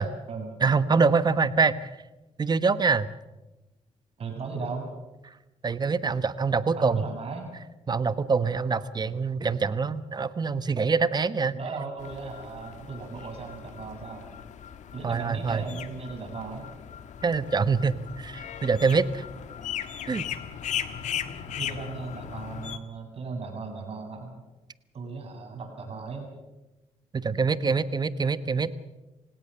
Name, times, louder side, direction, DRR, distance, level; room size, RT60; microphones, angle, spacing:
voice 1, 0.6-1.9 2.4-3.1 5.6-7.0 7.9-11.6 15.0-15.6 17.2-19.2 20.1-20.2 27.1-28.7, right 4 dB, 35° right, 14 dB, 1.2 m, -25 dB
voice 2, 4.2-4.9 6.8-7.5 11.5-14.2 14.9-16.7 21.5-24.3 24.9-26.3, right 4 dB, 55° right, 3 dB, 7.8 m, -37 dB
sound 1, 12.0-22.8, left 9 dB, 75° left, 1.6 m, -38 dB
28.0 x 17.5 x 6.9 m, 1.1 s
cardioid pair, 90°, 12 cm